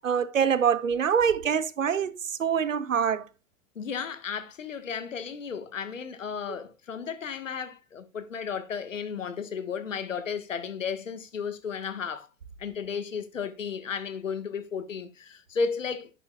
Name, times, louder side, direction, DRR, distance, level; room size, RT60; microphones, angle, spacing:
voice 1, 0.0-3.2, right 7 dB, 80° right, 0.9 m, -25 dB
voice 2, 3.7-12.3 12.6-16.1, left 6 dB, 75° left, 1.4 m, -34 dB
11.0 x 8.7 x 2.3 m
figure-of-eight pair, 90°, 39 cm